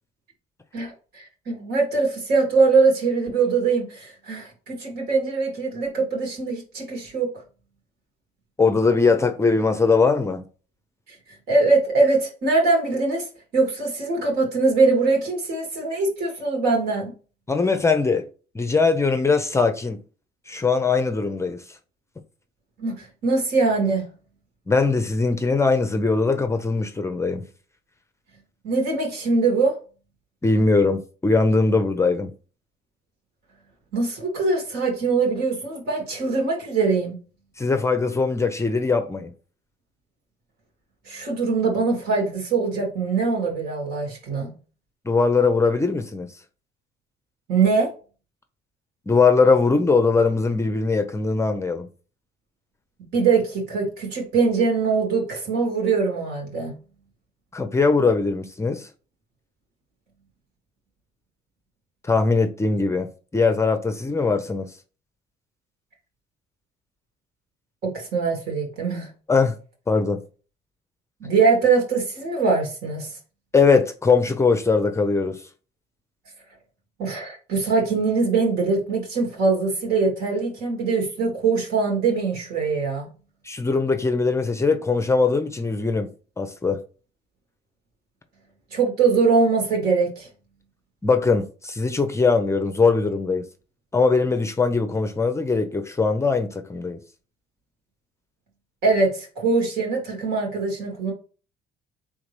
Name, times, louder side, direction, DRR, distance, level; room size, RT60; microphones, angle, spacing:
voice 1, 0.7-7.3 11.5-13.3 13.5-17.1 22.8-24.0 28.6-29.8 33.9-37.2 41.1-44.5 47.5-47.9 53.1-56.7 67.8-69.1 71.2-73.1 77.0-83.1 88.7-90.3 98.8-101.1, right 4 dB, 70° right, 2.3 m, -22 dB
voice 2, 8.6-10.5 17.5-18.3 18.5-20.0 20.5-21.6 24.7-27.5 30.4-32.3 37.6-39.3 45.1-46.3 49.1-51.9 57.5-58.9 62.0-64.7 69.3-69.5 69.9-70.2 73.5-75.4 83.4-86.8 91.0-93.4 93.9-97.0, left 4 dB, 15° left, 0.6 m, -21 dB
3.9 x 3.6 x 3.3 m
cardioid pair, 110°, 17 cm